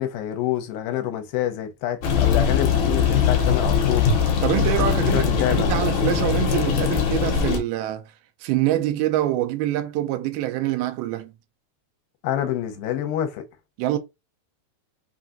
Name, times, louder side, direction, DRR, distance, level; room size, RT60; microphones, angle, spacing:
voice 1, 0.0-4.1 5.1-5.7 12.2-13.5, left 11 dB, 85° left, 2.4 m, -27 dB
sound 1, 2.0-7.6, left 7 dB, 70° left, 2.2 m, -21 dB
voice 2, 4.4-8.0 8.4-11.3 13.8-14.0, right 13 dB, 90° right, 2.5 m, -25 dB
5.9 x 2.3 x 2.6 m
omnidirectional pair, 4.3 m